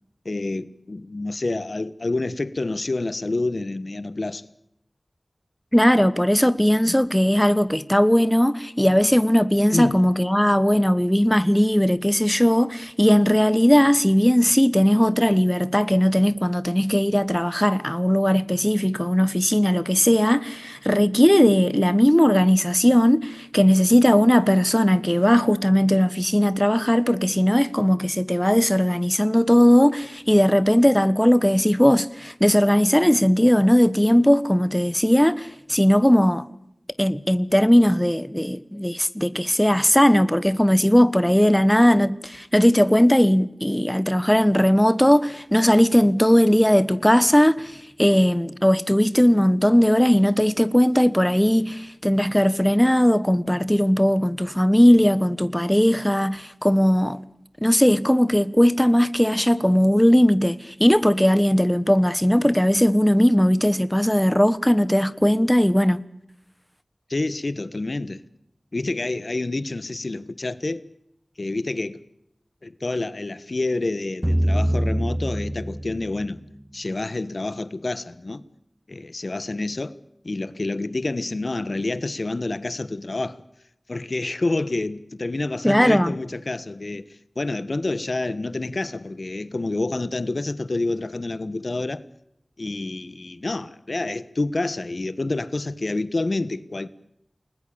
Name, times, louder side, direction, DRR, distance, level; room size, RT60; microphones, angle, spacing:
voice 1, 0.2-4.4 9.7-10.0 67.1-68.2 68.7-70.8 71.4-72.0 72.6-76.4 76.7-78.4 78.9-80.0 80.2-83.4 83.9-87.0 87.3-92.0 92.6-96.9, left 2 dB, 65° left, 1.4 m, -28 dB
voice 2, 5.7-36.4 37.0-57.2 57.6-66.0 85.6-86.2, equal, 10° left, 1.3 m, -18 dB
sound 1, 74.2-76.4, equal, 10° right, 1.1 m, -24 dB
29.5 x 20.5 x 8.8 m
wide cardioid pair, 50°, 0 cm